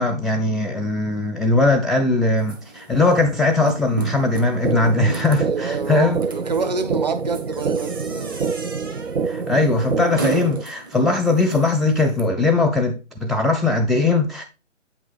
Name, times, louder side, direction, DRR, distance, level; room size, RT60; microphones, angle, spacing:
voice 1, 0.0-6.2 9.2-14.4, left 2 dB, ahead, 0.3 m, -20 dB
sound 1, 2.4-12.2, right 3 dB, 20° right, 0.8 m, -36 dB
sound 2, 4.6-10.6, right 5 dB, 80° right, 0.6 m, -26 dB
voice 2, 5.4-8.4, right 4 dB, 35° right, 1.1 m, -27 dB
8.3 x 5.8 x 3.4 m
figure-of-eight pair, 145°, 37 cm